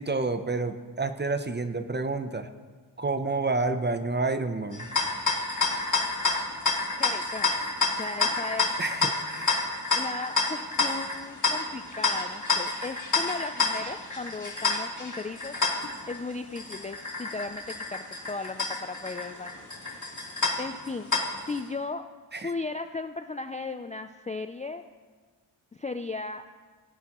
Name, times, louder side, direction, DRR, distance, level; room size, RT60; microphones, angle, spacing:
voice 1, 0.0-2.5 3.0-4.9 8.8-9.6 22.3-22.5, right 3 dB, 25° right, 10 dB, 0.6 m, -29 dB
sound 1, 4.7-21.6, left 4 dB, 40° left, 1.9 m, -29 dB
voice 2, 7.0-7.6 8.0-8.7 9.9-15.5 16.1-19.6 19.9-20.1 20.6-21.1 21.4-22.0 22.4-24.8 25.7-26.4, left 3 dB, 20° left, 8 dB, 0.3 m, -36 dB
18.0 x 8.2 x 3.0 m, 1.4 s
wide cardioid pair, 70°, 47 cm